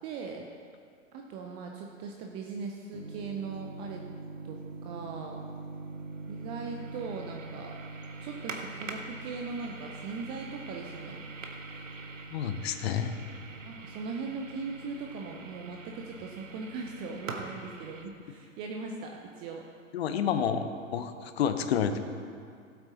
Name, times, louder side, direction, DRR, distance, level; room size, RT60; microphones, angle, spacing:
voice 1, 0.0-0.5 1.1-4.0 4.4-5.4 6.3-7.8 8.2-11.3 13.6-19.7, right 4 dB, 15° right, 2 dB, 0.4 m, -39 dB
sound 1, 2.9-18.0, right 3 dB, 70° right, 1.3 m, -43 dB
voice 2, 12.3-13.1 19.9-22.0, left 8 dB, 50° left, 9 dB, 1.0 m, -29 dB
16.0 x 8.3 x 4.1 m, 2.2 s
figure-of-eight pair, 105°, 39 cm